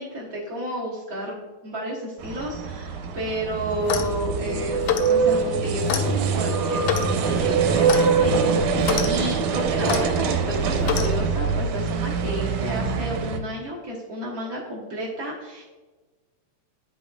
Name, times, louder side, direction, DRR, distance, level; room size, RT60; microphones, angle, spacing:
voice 1, 0.0-8.3 8.6-15.6, equal, 60° right, -5 dB, 0.9 m, -31 dB
sound 1, 2.2-13.4, right 5 dB, 90° right, 2.1 m, -24 dB
Clock, 3.8-4.2 4.8-5.1 5.9-6.1 6.8-7.1 7.9-8.1 8.8-9.1 9.9-10.0 10.8-11.1, left 9 dB, 80° left, 1.7 m, -26 dB
10.5 x 4.2 x 2.3 m, 1.3 s
omnidirectional pair, 3.5 m